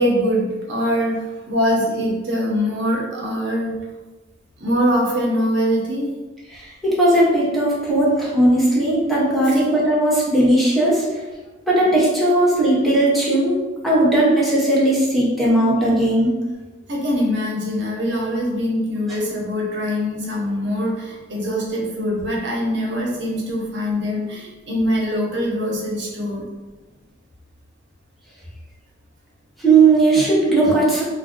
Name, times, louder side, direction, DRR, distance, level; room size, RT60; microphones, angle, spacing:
voice 1, 0.0-3.7 4.6-6.1 9.5-9.6 16.9-26.4, equal, 65° right, -3 dB, 0.8 m, -23 dB
voice 2, 6.5-11.0 11.7-13.6 13.8-16.3 29.6-31.0, right 2 dB, ahead, -7 dB, 0.7 m, -17 dB
2.6 x 2.3 x 3.6 m, 1.2 s
head